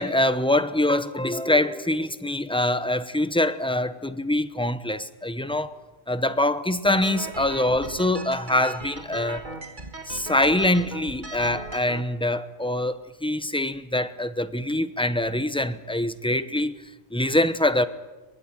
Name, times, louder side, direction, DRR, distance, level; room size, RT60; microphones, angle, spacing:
voice 1, 0.0-5.8 6.1-9.4 10.1-16.8 17.1-17.9, left 1 dB, 5° left, 0.8 m, -24 dB
sound 1, 6.8-12.0, right 3 dB, 45° right, 1.7 m, -38 dB
23.0 x 21.0 x 9.0 m
omnidirectional pair, 1.2 m